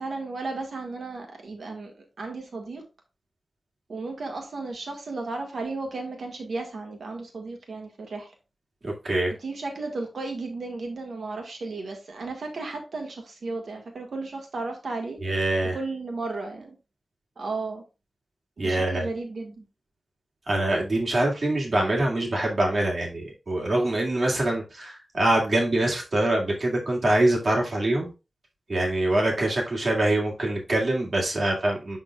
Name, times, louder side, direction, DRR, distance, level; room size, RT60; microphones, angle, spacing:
voice 1, 0.0-2.8 3.9-8.3 9.4-15.2 15.7-16.7 17.4-17.8 18.6-19.6, right 3 dB, 85° right, 2 dB, 1.5 m, -34 dB
voice 2, 8.8-9.3 15.2-15.8 18.6-19.0 20.5-28.1 28.7-32.0, right 1 dB, 55° right, -1 dB, 2.0 m, -24 dB
11.0 x 3.7 x 2.4 m, 0.29 s
wide cardioid pair, 100°, 0 cm